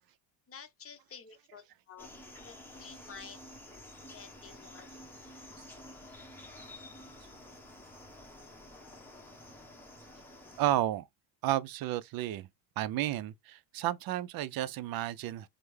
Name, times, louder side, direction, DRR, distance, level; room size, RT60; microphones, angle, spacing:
voice 1, 0.5-2.1 2.4-3.5 4.1-4.9, left 6 dB, 30° left, 0.8 m, -50 dB
sound 1, 2.0-10.7, left 1 dB, 5° left, 1.0 m, -50 dB
voice 2, 10.6-11.0 11.4-12.5 12.8-15.5, right 14 dB, 50° right, 0.5 m, -32 dB
3.3 x 2.1 x 3.1 m
supercardioid pair, 100°, 49 cm